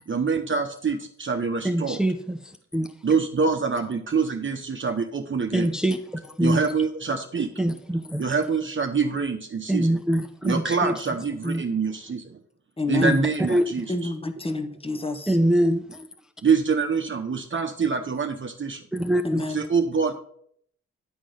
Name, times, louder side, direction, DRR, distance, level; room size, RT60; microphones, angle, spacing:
voice 1, 0.1-2.0 3.0-5.7 6.4-7.5 8.2-10.0 10.4-12.4 12.9-13.9 16.4-18.8 19.5-20.1, right 5 dB, 40° right, 0.9 m, -25 dB
voice 2, 1.6-2.9 5.5-6.6 7.6-8.2 9.7-10.9 11.4-11.6 13.0-13.7 15.3-16.1 18.9-19.4, right 1 dB, ahead, 0.7 m, -24 dB
voice 3, 12.8-13.2 13.9-15.4 19.2-19.7, left 2 dB, 20° left, 1.2 m, -29 dB
10.5 x 3.7 x 6.4 m
cardioid pair, 50°, 29 cm